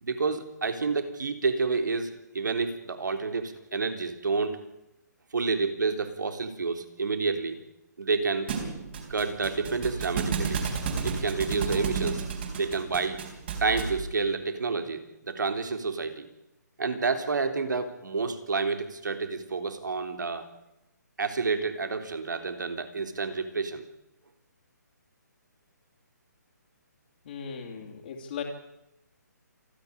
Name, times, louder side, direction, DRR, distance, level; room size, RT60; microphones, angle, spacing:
voice 1, 0.0-4.6 5.3-7.6 8.0-8.5 9.1-10.6 11.0-13.2 13.6-16.3 16.8-20.5 21.2-23.8, right 4 dB, 85° right, 8 dB, 3.6 m, -29 dB
Thump thud, 8.5-14.1, right 5 dB, 35° right, 3.8 m, -32 dB
voice 2, 27.3-28.4, left 7 dB, 35° left, -3 dB, 2.7 m, -37 dB
28.0 x 10.5 x 9.9 m, 0.89 s
hypercardioid pair, 170°, 10 cm